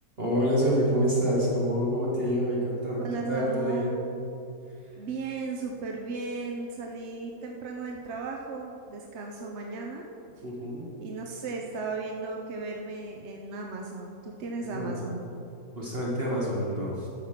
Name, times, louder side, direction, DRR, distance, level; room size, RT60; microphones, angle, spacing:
voice 1, 0.2-3.9 10.4-10.9 14.7-14.9 15.8-17.1, equal, 35° right, -6 dB, 1.9 m, -27 dB
voice 2, 3.0-4.0 5.0-10.0 11.0-15.2, right 4 dB, 55° right, 1 dB, 0.8 m, -35 dB
12.5 x 6.0 x 5.9 m, 2.8 s
omnidirectional pair, 1.8 m